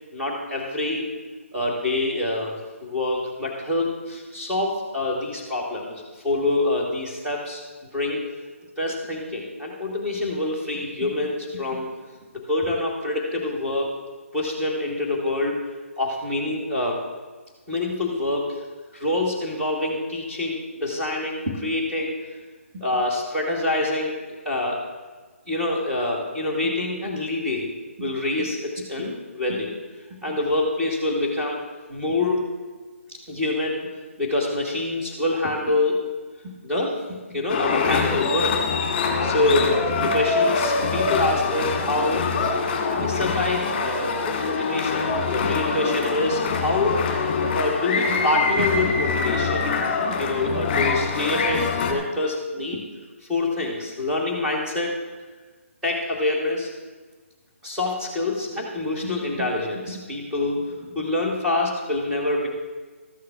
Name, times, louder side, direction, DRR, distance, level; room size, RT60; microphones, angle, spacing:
voice 1, 0.1-1.1 1.5-2.5 2.8-7.6 7.9-8.2 8.8-11.9 12.3-13.9 14.3-15.6 16.0-17.0 17.7-18.5 18.9-22.1 22.7-24.2 24.4-24.8 25.5-27.7 28.0-29.8 30.2-31.6 31.9-32.4 33.1-33.9 34.2-36.0 36.6-37.0 37.3-38.6 39.2-42.3 42.9-47.0 47.5-49.7 50.2-52.8 53.3-54.9 55.8-56.7 57.6-62.5, left 2 dB, 10° right, -4 dB, 2.4 m, -26 dB
sound 1, 37.5-51.9, left 4 dB, 30° left, 1.7 m, -24 dB
13.5 x 6.5 x 6.2 m, 1.3 s
figure-of-eight pair, 155°, 8 cm